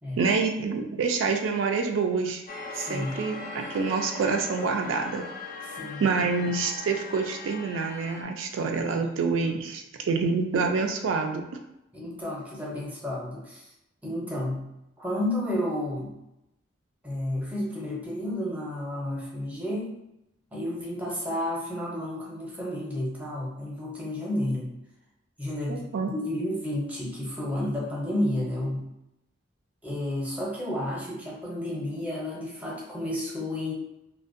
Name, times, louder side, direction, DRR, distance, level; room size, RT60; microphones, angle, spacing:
voice 1, 0.2-2.4 2.7-5.2 6.0-11.5 25.7-26.1, right 4 dB, 85° right, 3 dB, 0.3 m, -27 dB
sound 1, 2.5-8.2, left 3 dB, 45° left, 0.4 m, -40 dB
voice 2, 2.8-3.2 5.7-6.1 8.9-9.1 11.9-13.7 14.0-14.7 15.0-16.2 17.0-20.0 20.5-24.7 25.4-28.9 29.8-33.7, left 1 dB, 10° right, -4 dB, 0.6 m, -31 dB
2.5 x 2.1 x 2.5 m, 0.88 s
head